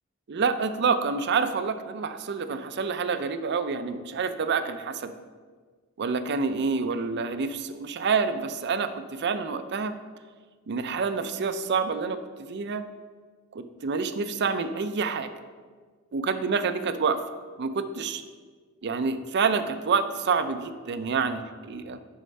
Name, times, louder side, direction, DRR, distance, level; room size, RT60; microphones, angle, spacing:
voice 1, 0.3-5.1 6.0-9.9 10.7-12.2 12.5-12.9 13.5-15.3 16.1-17.2 17.6-18.2 18.8-22.0, right 5 dB, 50° right, 10 dB, 0.5 m, -27 dB
6.6 x 5.5 x 5.2 m, 1.5 s
head